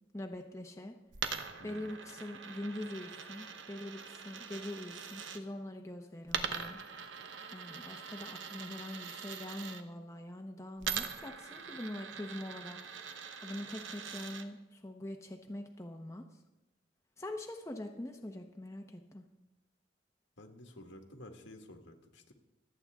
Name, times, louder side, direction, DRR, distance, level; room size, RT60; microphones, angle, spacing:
voice 1, 0.1-1.0 1.6-6.8 7.5-12.8 13.4-16.2 17.2-19.2, left 1 dB, 15° left, 3 dB, 0.9 m, -43 dB
Coin (dropping), 1.1-5.4 6.3-9.8 10.8-14.5, right 6 dB, 85° right, 1.0 m, -42 dB
voice 2, 1.6-1.9 20.4-22.3, left 1 dB, 75° left, 4 dB, 1.7 m, -52 dB
26.0 x 8.9 x 3.6 m, 1.0 s
head